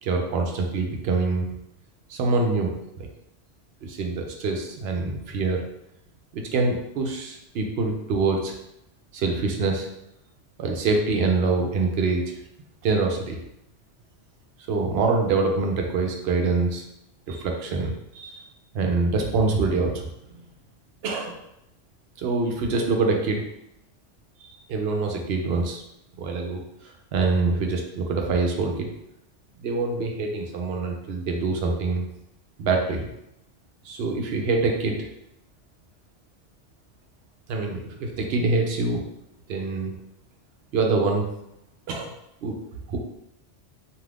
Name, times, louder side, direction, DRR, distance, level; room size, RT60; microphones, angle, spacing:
voice 1, 0.0-1.5 2.1-3.1 3.8-5.6 6.3-8.5 9.1-9.9 10.6-12.2 12.8-13.4 14.7-16.8 17.3-18.4 18.7-20.0 21.0-21.4 22.2-23.4 24.7-25.8 26.2-26.6 27.1-28.9 29.6-32.1 32.6-33.1 33.9-35.0 37.5-39.1 39.5-39.9 40.7-41.3 41.9-42.1 42.4-42.6 42.9-43.0, right 3 dB, 70° right, 2 dB, 0.8 m, -25 dB
2.6 x 2.4 x 3.3 m, 0.83 s
omnidirectional pair, 1.2 m